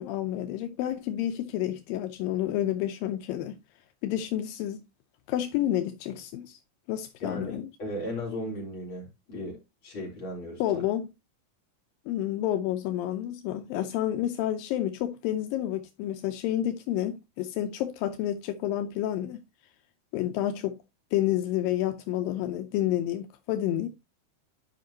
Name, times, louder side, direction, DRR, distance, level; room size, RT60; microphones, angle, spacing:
voice 1, 0.0-3.6 4.0-4.8 5.3-6.6 6.9-7.7 10.6-11.1 12.1-19.4 20.1-20.8 21.1-23.9, left 12 dB, 85° left, 2.0 m, -29 dB
voice 2, 7.2-10.8, equal, 30° left, 4.1 m, -36 dB
12.0 x 5.2 x 2.9 m
omnidirectional pair, 4.9 m